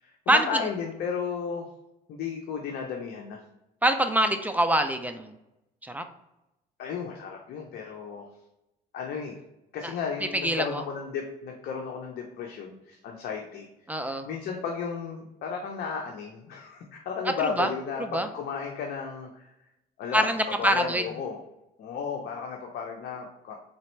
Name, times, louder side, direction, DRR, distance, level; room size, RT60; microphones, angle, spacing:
voice 1, 0.0-1.7 2.1-3.4 6.8-8.3 8.9-9.4 9.7-19.5 20.0-21.4 21.8-23.5, left 6 dB, 65° left, 1 dB, 0.7 m, -34 dB
voice 2, 3.8-5.3 5.8-6.0 9.8-9.9 10.3-10.6 13.9-14.3 17.6-17.7 18.1-18.3 20.1-21.0, right 1 dB, 10° right, 7 dB, 0.4 m, -24 dB
4.0 x 3.4 x 3.1 m, 0.91 s
cardioid pair, 110°, 17 cm